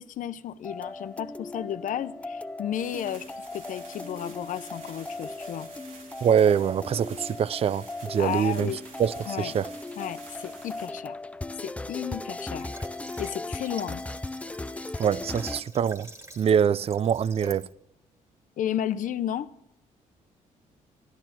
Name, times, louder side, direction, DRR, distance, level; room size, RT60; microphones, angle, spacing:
voice 1, 0.0-3.2 3.5-5.7 8.2-8.8 9.3-9.5 10.0-11.2 11.6-12.7 13.2-14.0 18.6-19.5, left 10 dB, 70° left, 0.8 m, -33 dB
sound 1, 0.6-15.6, left 2 dB, 10° left, 0.5 m, -38 dB
sound 2, 2.7-10.9, right 4 dB, 80° right, 4.7 m, -49 dB
voice 2, 6.2-8.7 9.0-9.7 15.0-16.1 16.4-17.7, right 8 dB, 45° right, 0.5 m, -24 dB
Water / Water tap faucet, 12.6-17.7, right 2 dB, 20° right, 2.3 m, -47 dB
15.5 x 12.5 x 5.9 m
cardioid pair, 110°, 14 cm